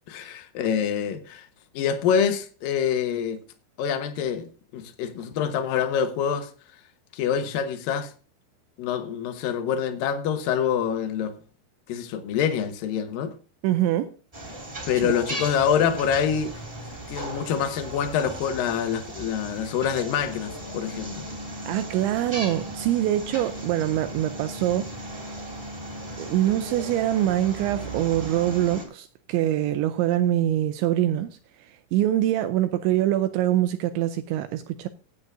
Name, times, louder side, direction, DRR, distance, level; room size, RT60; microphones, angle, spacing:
voice 1, 0.1-1.5 1.7-3.4 3.8-6.5 7.1-8.1 8.8-11.4 11.9-13.3 14.9-16.5 17.1-21.3, left 8 dB, 75° left, 2.1 m, -26 dB
voice 2, 13.6-14.1 15.0-15.1 21.7-24.9 26.2-31.3 31.6-34.9, right 13 dB, 80° right, 2.7 m, -24 dB
sound 1, 14.3-28.9, right 1 dB, 10° right, 2.4 m, -37 dB
16.0 x 9.2 x 2.6 m
omnidirectional pair, 5.8 m